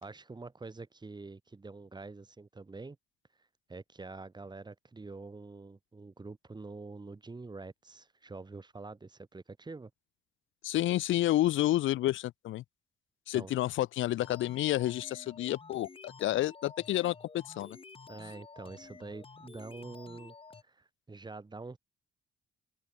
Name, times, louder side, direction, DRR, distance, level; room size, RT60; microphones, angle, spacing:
voice 1, 0.0-3.0 3.7-9.9 13.3-13.5 18.1-20.4 20.6-21.8, right 3 dB, 20° right, 2.3 m, -46 dB
voice 2, 10.6-12.6 13.3-17.8, left 15 dB, 80° left, 0.7 m, -30 dB
sound 1, 14.2-20.6, left 4 dB, 25° left, 1.9 m, -51 dB
open air
cardioid pair, 90°, 20 cm